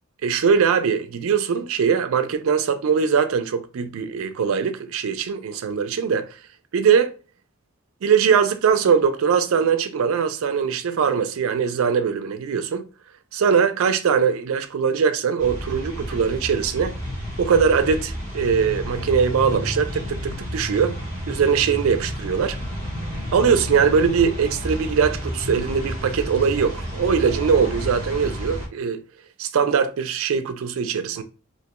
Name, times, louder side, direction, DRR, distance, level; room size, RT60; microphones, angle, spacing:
voice 1, 0.2-6.3 6.7-7.1 8.0-12.8 13.3-17.0 17.4-21.0 21.3-22.6 23.3-29.0 29.4-31.2, right 6 dB, 70° right, 0.4 m, -21 dB
sound 1, 15.4-28.7, equal, 20° left, 0.9 m, -31 dB
2.7 x 2.2 x 2.8 m
head